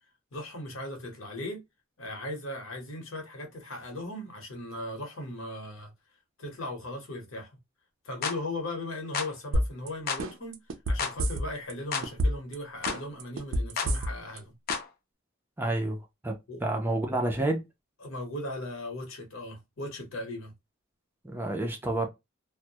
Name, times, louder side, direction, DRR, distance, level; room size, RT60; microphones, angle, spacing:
voice 1, 0.3-1.6 2.0-5.9 6.4-7.6 8.0-10.6 10.9-14.5 16.5-16.6 18.0-20.5, left 1 dB, 70° left, 1.0 m, -38 dB
sound 1, 8.2-8.4 9.1-9.3 10.1-10.3 11.0-11.2 11.9-12.1 12.8-13.0 13.8-13.9 14.7-14.9, left 6 dB, 45° left, 0.4 m, -31 dB
sound 2, 9.5-9.9 10.2-11.7 12.0-12.5 12.9-14.4 14.7-14.8, equal, 70° right, 0.5 m, -27 dB
voice 2, 15.6-16.0 16.2-16.3 16.6-17.6 21.2-22.1, right 2 dB, 10° right, 0.4 m, -29 dB
2.2 x 2.1 x 2.7 m
head